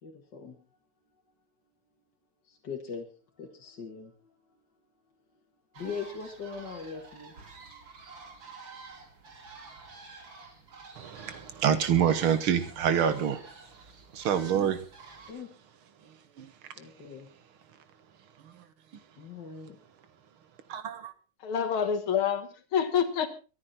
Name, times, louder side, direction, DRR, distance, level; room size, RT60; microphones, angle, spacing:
voice 1, 0.0-0.6 2.5-3.1 3.4-4.3 5.8-7.3 7.6-7.8 15.3-15.5 16.8-17.3 19.2-19.8, left 5 dB, 55° left, 2.4 m, -40 dB
sound 1, 5.7-15.3, right 4 dB, 65° right, 3.5 m, -49 dB
voice 2, 11.0-13.4 14.1-14.8 16.4-16.5 18.4-18.6 20.7-21.1, right 8 dB, 90° right, 2.2 m, -27 dB
voice 3, 21.4-23.3, left 7 dB, 90° left, 2.4 m, -27 dB
23.5 x 9.8 x 4.2 m
omnidirectional pair, 2.2 m